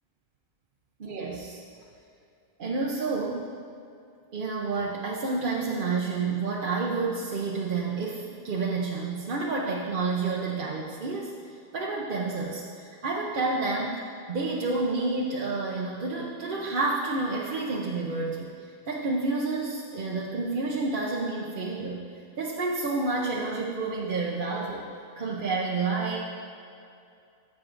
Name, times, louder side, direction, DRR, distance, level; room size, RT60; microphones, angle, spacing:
voice 1, 1.0-1.6 2.6-3.5 4.3-11.3 11.7-18.5 18.9-22.0 22.4-24.9 25.2-26.2, right 3 dB, 60° right, -4 dB, 0.9 m, -29 dB
14.5 x 7.3 x 2.5 m, 2.5 s
omnidirectional pair, 1.0 m